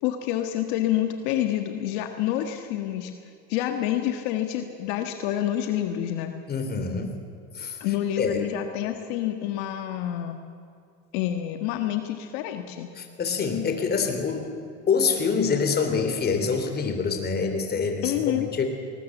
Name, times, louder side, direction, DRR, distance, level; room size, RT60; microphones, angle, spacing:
voice 1, 0.0-3.1 3.5-6.3 7.8-10.4 11.1-12.9 18.0-18.5, left 12 dB, 75° left, 6 dB, 1.6 m, -28 dB
voice 2, 6.5-7.2 7.6-7.8 8.2-8.5 13.0-14.5 14.9-18.7, left 5 dB, 35° left, 6 dB, 3.5 m, -26 dB
20.0 x 20.0 x 7.3 m, 2.4 s
supercardioid pair, 105°, 29 cm